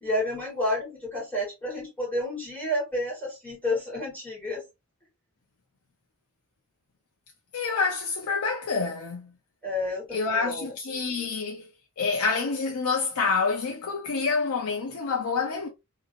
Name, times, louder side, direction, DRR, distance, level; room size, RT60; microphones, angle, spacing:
voice 1, 0.0-4.6 9.6-10.7, left 1 dB, 10° left, 1.7 m, -30 dB
voice 2, 7.5-9.3 10.1-11.7 12.0-15.7, left 4 dB, 85° left, 0.6 m, -27 dB
2.8 x 2.7 x 2.5 m
head